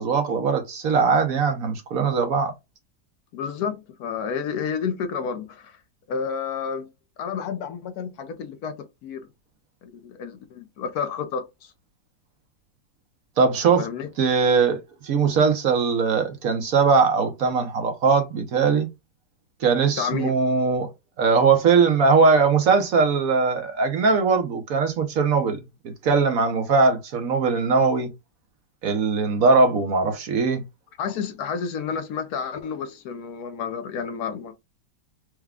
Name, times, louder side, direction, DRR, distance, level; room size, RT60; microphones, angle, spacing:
voice 1, 0.0-2.5 13.4-13.9 14.2-18.9 19.6-20.9 21.2-25.6 25.8-28.1 28.8-30.6, right 5 dB, 60° right, 1.1 m, -20 dB
voice 2, 3.3-5.8 6.1-6.9 7.2-9.2 9.8-11.7 13.8-14.1 20.0-20.3 31.0-34.5, left 6 dB, 70° left, 1.1 m, -30 dB
4.7 x 2.2 x 3.5 m
omnidirectional pair, 1.8 m